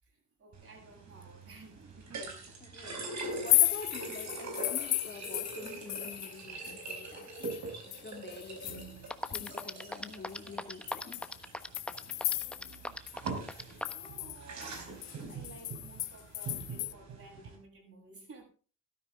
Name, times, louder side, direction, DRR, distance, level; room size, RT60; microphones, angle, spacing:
voice 1, 0.0-2.9 3.6-3.7 8.0-8.2 12.0-13.0 13.8-14.8 15.3-18.4, right 3 dB, 50° right, 1 dB, 7.8 m, -55 dB
sound 1, 0.5-17.6, right 3 dB, 65° right, 4.9 m, -43 dB
voice 2, 2.6-8.8 9.3-11.2, left 4 dB, 35° left, 4 dB, 2.4 m, -47 dB
sound 2, 3.3-6.4 6.6-9.8 10.3-10.4 10.9-12.8 13.1-13.2 13.5-16.9, left 16 dB, 85° left, 0.7 m, -34 dB
sound 3, 8.8-8.9 9.1-14.1, left 1 dB, 5° left, 1.1 m, -38 dB
13.5 x 12.5 x 3.7 m, 0.37 s
cardioid pair, 90°, 30 cm